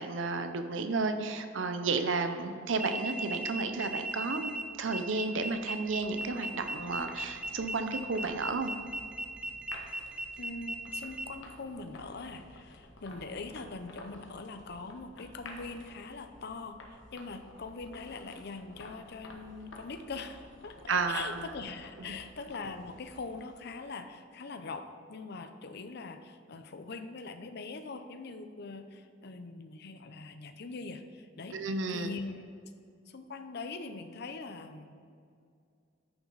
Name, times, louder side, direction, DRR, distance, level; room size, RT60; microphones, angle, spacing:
voice 1, 0.0-4.5 4.8-8.7 20.9-21.4 22.1-22.2 31.5-32.1, right 4 dB, 80° right, 8 dB, 0.6 m, -32 dB
sound 1, 2.7-11.3, right 1 dB, 5° right, 0.5 m, -38 dB
sound 2, 4.9-24.0, left 1 dB, 75° left, 1.1 m, -53 dB
voice 2, 10.4-32.7 33.1-35.0, left 3 dB, 60° left, 9 dB, 0.6 m, -42 dB
9.8 x 6.1 x 4.0 m, 2.3 s
head